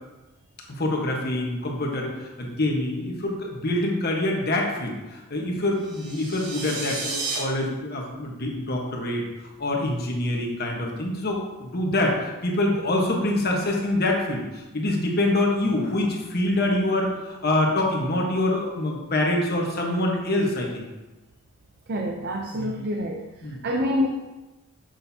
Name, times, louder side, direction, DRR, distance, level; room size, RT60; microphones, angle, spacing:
voice 1, 0.7-20.9 22.5-22.7 23.4-23.6, left 1 dB, 45° left, 0 dB, 1.2 m, -25 dB
sound 1, 5.8-7.4, right 3 dB, 90° right, 1.9 m, -32 dB
voice 2, 21.9-23.3 23.6-24.1, left 1 dB, 45° right, 2 dB, 0.5 m, -26 dB
7.7 x 6.4 x 2.8 m, 1.1 s
head